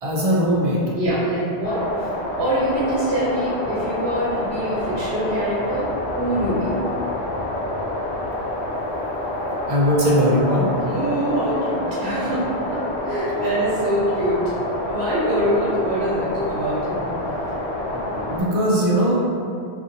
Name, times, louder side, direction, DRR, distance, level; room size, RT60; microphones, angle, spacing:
voice 1, 0.0-0.8 9.7-10.8 18.3-19.2, equal, 50° right, -5 dB, 0.4 m, -19 dB
voice 2, 1.0-1.8 2.4-6.8 10.8-12.4 12.7-14.4 14.9-17.1, equal, 80° right, -10 dB, 1.0 m, -24 dB
sound 1, 1.6-18.4, left 1 dB, 85° left, 0.9 m, -27 dB
2.6 x 2.5 x 2.5 m, 2.3 s
omnidirectional pair, 1.1 m